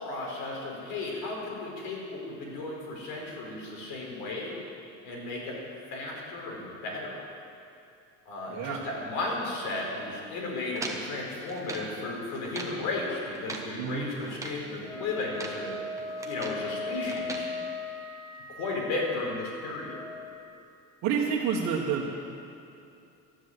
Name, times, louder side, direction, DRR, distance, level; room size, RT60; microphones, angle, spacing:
voice 1, 0.0-4.6 5.0-5.6 5.9-7.2 8.3-15.7 16.2-17.5 18.5-20.0, left 2 dB, 75° left, -2 dB, 4.5 m, -34 dB
voice 2, 8.5-8.9 13.8-14.1 21.0-22.1, right 7 dB, 55° right, -5 dB, 1.6 m, -29 dB
sound 1, 10.8-11.9 12.3-12.8 13.2-13.7 14.2-14.6 15.2-15.6 16.0-16.7 17.1-17.5, right 2 dB, 10° right, 1.3 m, -40 dB
Wind instrument woodwind instrument, 14.8-20.1, left 2 dB, 15° left, 2.9 m, -38 dB
12.5 x 10.5 x 8.0 m, 2.6 s
cardioid pair, 150°, 33 cm